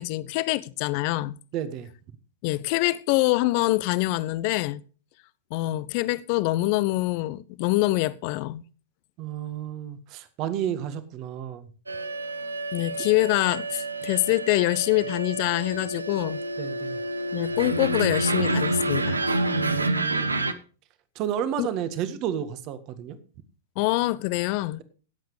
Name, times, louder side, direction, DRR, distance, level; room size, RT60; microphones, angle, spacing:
voice 1, 0.0-1.4 2.4-4.8 5.5-8.6 12.7-16.4 17.3-19.2 21.6-21.7 23.8-24.8, left 19 dB, 50° left, 0.8 m, -25 dB
voice 2, 1.5-1.9 9.2-11.7 16.6-17.0 19.5-20.5 21.2-23.2, right 10 dB, 40° right, 1.7 m, -31 dB
sound 1, 11.9-20.5, right 2 dB, 90° right, 1.1 m, -28 dB
17.5 x 8.1 x 4.9 m
figure-of-eight pair, 100°, 0 cm